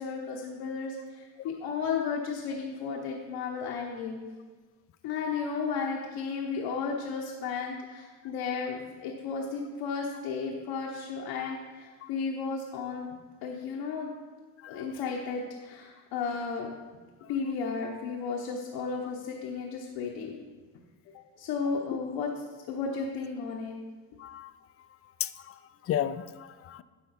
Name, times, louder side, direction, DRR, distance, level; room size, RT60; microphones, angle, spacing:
voice 1, 0.0-4.2 5.0-13.1 13.4-14.1 14.7-16.7 17.3-20.4 21.4-22.3 22.7-23.7, left 5 dB, 80° left, -1 dB, 1.1 m, -34 dB
voice 2, 24.2-24.5 25.2-26.8, left 11 dB, 35° left, 14 dB, 0.4 m, -34 dB
10.5 x 5.8 x 4.2 m, 1.4 s
cardioid pair, 95°, 42 cm